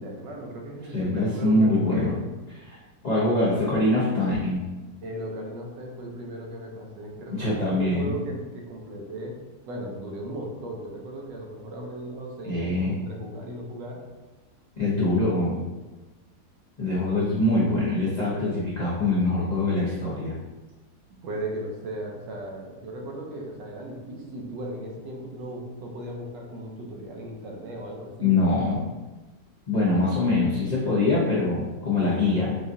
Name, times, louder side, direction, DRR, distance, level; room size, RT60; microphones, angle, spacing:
voice 1, 0.0-2.1 5.0-9.4 9.7-14.0 21.2-28.3, right 1 dB, 75° right, 0 dB, 1.4 m, -37 dB
voice 2, 0.9-2.1 2.6-4.6 7.3-8.1 12.4-13.0 14.8-15.6 16.8-20.3 28.2-28.9 29.7-32.6, left 2 dB, 80° left, -9 dB, 0.3 m, -24 dB
4.7 x 2.4 x 2.6 m, 1.2 s
omnidirectional pair, 2.0 m